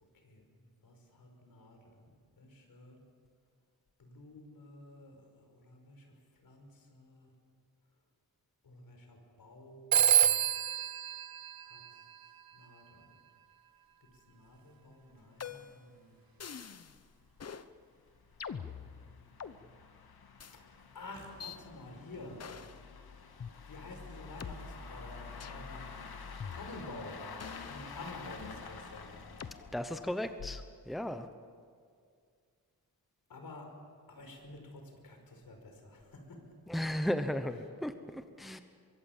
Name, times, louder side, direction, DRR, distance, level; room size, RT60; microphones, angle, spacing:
voice 1, 0.0-2.1 2.4-3.0 4.0-6.1 6.4-7.3 8.6-10.2 11.7-12.1 12.5-13.2 14.1-16.2 18.6-19.8 20.5-22.4 23.7-26.0 26.5-27.3 27.7-29.2 33.3-33.7 34.1-36.4, left 2 dB, 70° left, 3 dB, 5.4 m, -51 dB
Telephone, 9.9-12.4, right 9 dB, 75° right, 0.8 m, -28 dB
sound 1, 14.1-14.2 14.5-14.6 15.0-15.1 15.4-15.5 16.2-30.5, left 5 dB, 90° left, 2.3 m, -49 dB
sound 2, 15.4-15.9 16.4-17.0 17.4-17.7 18.4-19.6 20.4-20.6 21.4-21.6 22.4-22.8 23.4-23.5 24.4-24.5 25.4-25.7 26.4-27.0 27.4-28.7 29.4-29.6 30.4-30.8, left 7 dB, 45° left, 0.9 m, -44 dB
voice 2, 29.7-31.3 36.7-38.6, equal, ahead, 8 dB, 0.9 m, -35 dB
24.0 x 23.5 x 7.4 m, 2.2 s
wide cardioid pair, 150°, 36 cm